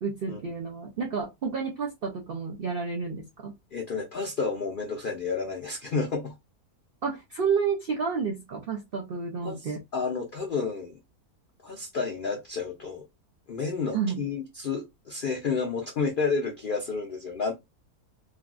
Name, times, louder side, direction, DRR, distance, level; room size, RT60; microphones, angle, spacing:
voice 1, 0.0-3.6 7.0-9.8 13.9-14.2, right 5 dB, 75° right, 0.5 m, -30 dB
voice 2, 3.7-6.3 9.4-11.0 11.6-13.0 13.5-17.5, left 4 dB, 75° left, 0.4 m, -31 dB
3.3 x 2.2 x 2.4 m
omnidirectional pair, 1.6 m